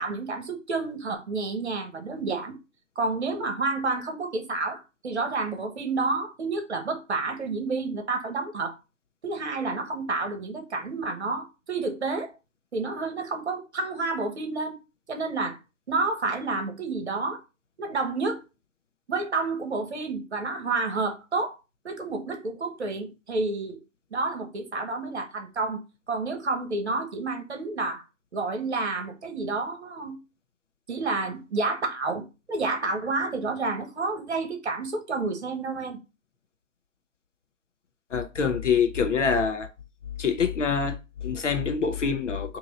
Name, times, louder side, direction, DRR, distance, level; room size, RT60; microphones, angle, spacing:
voice 1, 0.0-2.6 2.9-8.7 9.2-12.3 12.7-14.8 15.1-15.6 15.9-17.4 17.8-18.4 19.1-21.6 21.8-23.8 24.1-25.8 26.1-28.0 28.3-30.2 30.9-36.0, right 3 dB, 55° right, 1.2 m, -29 dB
voice 2, 38.1-39.7 40.2-42.6, left 6 dB, 65° left, 0.8 m, -25 dB
3.7 x 2.9 x 3.9 m
hypercardioid pair, 170°, 40 cm